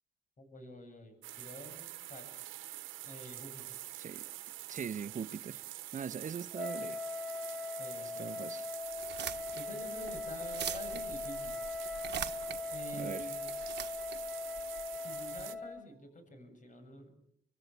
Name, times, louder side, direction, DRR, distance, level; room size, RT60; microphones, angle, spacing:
voice 1, 0.4-2.3 3.0-3.8 7.8-8.5 9.5-11.6 12.7-13.5 14.9-17.2, equal, 40° left, 7.7 m, -49 dB
sound 1, 1.2-15.6, right 15 dB, 85° right, 1.1 m, -46 dB
voice 2, 4.7-5.6 5.9-7.0 8.2-8.7 13.0-13.3, right 7 dB, 40° right, 1.2 m, -41 dB
Wind instrument woodwind instrument, 6.5-15.9, left 3 dB, ahead, 1.5 m, -40 dB
sound 2, 8.9-15.4, right 10 dB, 60° right, 1.6 m, -43 dB
25.5 x 24.0 x 7.3 m
cardioid pair, 90°, 20 cm